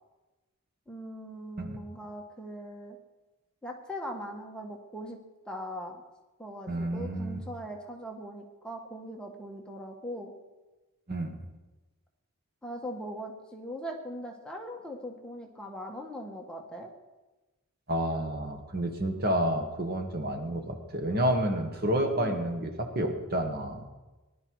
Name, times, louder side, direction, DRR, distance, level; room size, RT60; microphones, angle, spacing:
voice 1, 0.9-3.0 3.6-5.2 5.4-6.0 6.4-10.3 12.6-16.9 22.0-22.4, equal, 5° left, 1 dB, 1.5 m, -40 dB
voice 2, 6.7-7.4 11.1-11.4 17.9-23.8, right 1 dB, 45° right, 5 dB, 1.6 m, -30 dB
19.0 x 12.0 x 4.8 m, 1.1 s
head